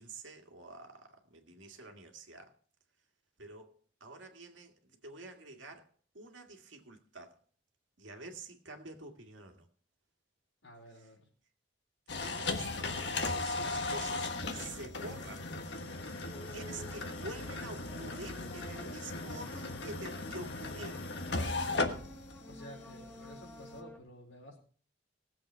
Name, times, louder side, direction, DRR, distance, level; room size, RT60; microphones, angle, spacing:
voice 1, 0.0-2.5 3.4-3.7 4.0-5.9 6.1-7.4 8.0-9.7 12.2-15.5 16.5-21.7, right 2 dB, 80° right, 2.0 m, -48 dB
voice 2, 10.6-11.3 22.5-24.6, left 1 dB, 80° left, 4.4 m, -52 dB
sound 1, 12.1-23.8, left 3 dB, 65° left, 1.4 m, -37 dB
sound 2, 16.3-24.0, equal, 5° left, 0.9 m, -52 dB
18.5 x 7.6 x 4.5 m
head